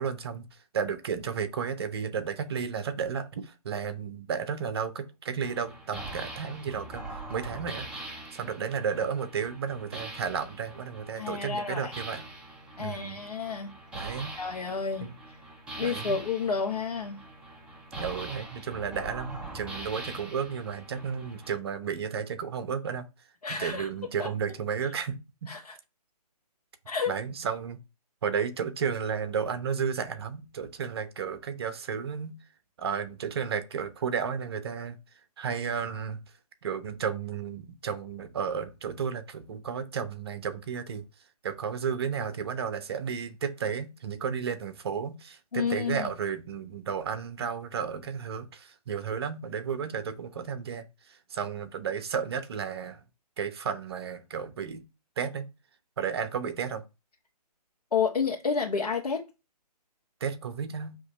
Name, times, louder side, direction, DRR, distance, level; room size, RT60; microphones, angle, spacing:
voice 1, 0.0-12.3 12.8-13.2 13.9-14.4 15.0-15.1 15.8-16.2 17.9-23.1 23.5-25.5 27.1-27.8 28.2-32.4 32.8-35.0 35.4-36.2 36.6-41.0 41.4-53.0 53.4-54.8 55.2-55.5 56.0-56.8 60.2-61.0, right 6 dB, 40° right, 0.8 m, -33 dB
sound 1, 5.4-21.6, right 1 dB, 5° right, 0.6 m, -43 dB
voice 2, 11.1-11.9 12.8-13.7 14.3-15.1 15.8-17.2 23.4-23.9 24.2-24.3 25.5-25.7 26.9-27.1 45.5-46.1 57.9-59.3, left 5 dB, 65° left, 1.4 m, -30 dB
6.3 x 3.1 x 5.5 m
figure-of-eight pair, 145°, 21 cm